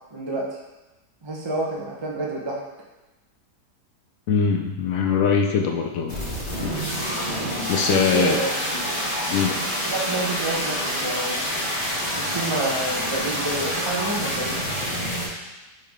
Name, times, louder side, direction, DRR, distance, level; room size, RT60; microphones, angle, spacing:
voice 1, 0.1-0.6 1.2-2.6 7.9-8.6 9.8-11.5 12.2-14.6, right 2 dB, 25° right, -3 dB, 0.6 m, -28 dB
voice 2, 4.3-6.2 6.6-6.8 7.7-8.4 9.3-9.6, left 6 dB, 70° left, 3 dB, 0.8 m, -22 dB
sound 1, 6.1-15.3, equal, 25° left, 1.7 m, -27 dB
9.4 x 3.6 x 3.5 m, 1.1 s
omnidirectional pair, 1.9 m